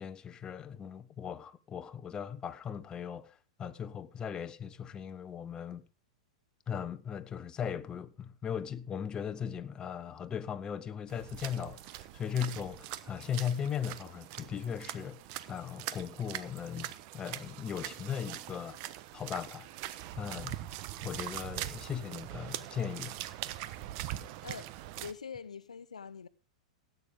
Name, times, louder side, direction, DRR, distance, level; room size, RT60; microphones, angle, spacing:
voice 1, 0.0-5.8 6.7-15.2 15.5-18.8 19.1-19.7 20.2-20.7 21.0-23.1, left 8 dB, 25° left, 1.2 m, -38 dB
sound 1, 11.1-25.1, right 14 dB, 45° right, 1.1 m, -42 dB
voice 2, 24.4-24.7 25.0-26.3, left 6 dB, 85° left, 0.7 m, -44 dB
17.5 x 9.3 x 3.7 m
hypercardioid pair, 105°, 4 cm